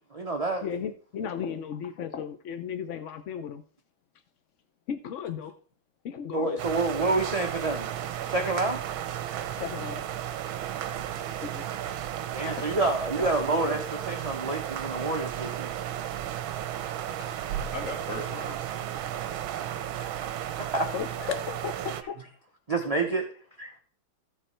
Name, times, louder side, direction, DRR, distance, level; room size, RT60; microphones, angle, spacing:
voice 1, 0.1-0.6 6.3-7.9 8.3-8.8 12.3-15.7 20.0-20.1 20.7-20.9 22.7-23.3 23.6-23.8, right 2 dB, 30° right, 0.7 m, -28 dB
voice 2, 0.6-3.6 4.9-5.5 6.0-6.6 9.6-10.1 11.3-11.7 12.5-12.8 13.2-13.3 16.1-16.2 17.2-17.3 20.9-22.1, left 7 dB, 75° left, 0.7 m, -35 dB
sound 1, 6.6-22.0, right 11 dB, 80° right, 1.5 m, -34 dB
voice 3, 17.3-18.9, left 2 dB, 40° left, 2.3 m, -39 dB
14.5 x 4.9 x 4.3 m
omnidirectional pair, 2.2 m